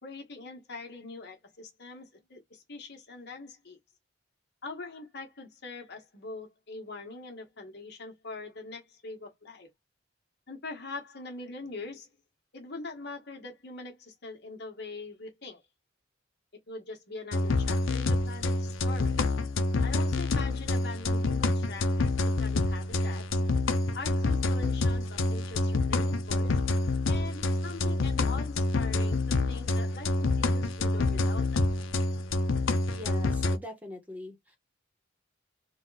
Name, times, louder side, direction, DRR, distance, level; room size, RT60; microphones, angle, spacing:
voice 1, 0.0-3.8 4.6-9.7 10.5-12.2 12.5-15.6 16.7-19.2 19.8-23.4 23.9-26.6 27.0-31.6, left 3 dB, 55° left, 1.5 m, -43 dB
sound 1, 17.3-33.6, left 2 dB, 80° left, 0.7 m, -27 dB
voice 2, 32.9-34.6, left 1 dB, 10° right, 1.1 m, -42 dB
3.9 x 2.4 x 4.0 m
head